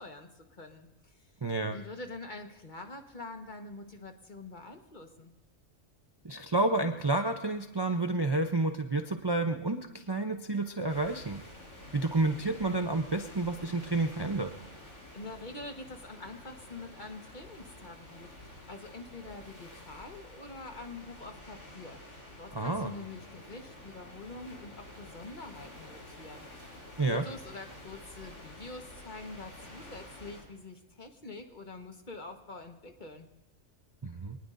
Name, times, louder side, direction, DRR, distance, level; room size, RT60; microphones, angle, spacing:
voice 1, 0.0-1.3 1.7-5.3 15.1-33.3, left 2 dB, 40° left, 4 dB, 1.5 m, -46 dB
voice 2, 1.4-1.8 6.2-11.4 11.9-14.5 22.5-22.9 27.0-27.2 34.0-34.4, right 2 dB, 25° right, 4 dB, 0.6 m, -30 dB
sound 1, 10.9-30.4, left 1 dB, 70° left, 4.3 m, -50 dB
25.5 x 19.5 x 2.7 m, 1.1 s
omnidirectional pair, 1.3 m